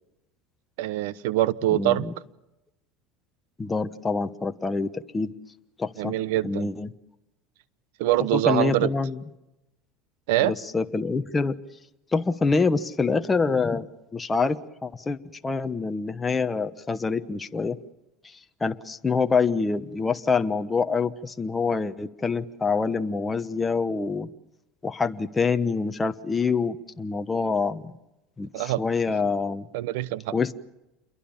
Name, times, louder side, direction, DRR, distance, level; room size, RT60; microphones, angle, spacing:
voice 1, 0.8-2.0 6.0-6.7 8.0-8.9 10.3-10.5 28.5-28.8 29.7-30.3, right 15 dB, 80° right, 1.0 m, -24 dB
voice 2, 1.7-2.1 3.6-5.3 5.8-6.1 6.4-6.9 8.3-9.2 10.4-11.6 12.1-13.9 14.1-15.2 15.4-17.8 18.2-24.3 24.8-27.9 28.4-29.7 30.3-30.5, left 4 dB, 15° left, 1.1 m, -26 dB
28.5 x 22.5 x 7.3 m
supercardioid pair, 130°, 0 cm